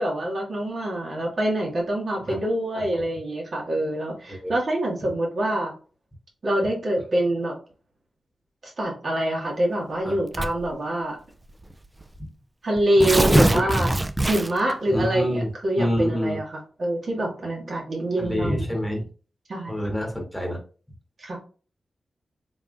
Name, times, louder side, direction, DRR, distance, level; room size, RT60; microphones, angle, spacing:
voice 1, 0.0-5.7 6.4-7.5 8.6-11.1 12.6-13.9 14.3-18.7 19.5-19.7 21.2-21.4, right 1 dB, 55° right, -1 dB, 1.7 m, -25 dB
voice 2, 2.7-3.0 4.3-4.5 5.0-5.1 10.0-10.5 13.1-13.7 14.9-15.5 15.8-16.4 18.2-19.0 19.7-20.6, equal, 5° left, 0 dB, 1.5 m, -27 dB
Tearing, 10.3-10.7 11.6-11.7 12.0-12.1 12.8-14.7, right 1 dB, 20° right, 0.3 m, -22 dB
4.2 x 3.6 x 2.4 m, 0.37 s
wide cardioid pair, 100°, 0 cm